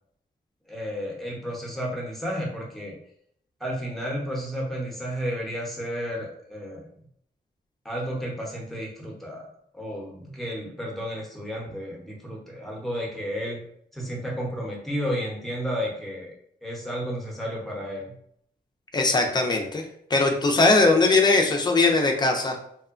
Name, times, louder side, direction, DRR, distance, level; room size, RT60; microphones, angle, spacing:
voice 1, 0.7-2.9 3.6-6.9 7.8-9.5 9.7-13.6 13.9-16.3 16.6-18.1, equal, ahead, -3 dB, 0.7 m, -32 dB
voice 2, 18.9-19.8 20.1-22.6, left 3 dB, 25° left, 3 dB, 0.4 m, -20 dB
2.8 x 2.1 x 2.4 m, 0.68 s
wide cardioid pair, 120°, 17 cm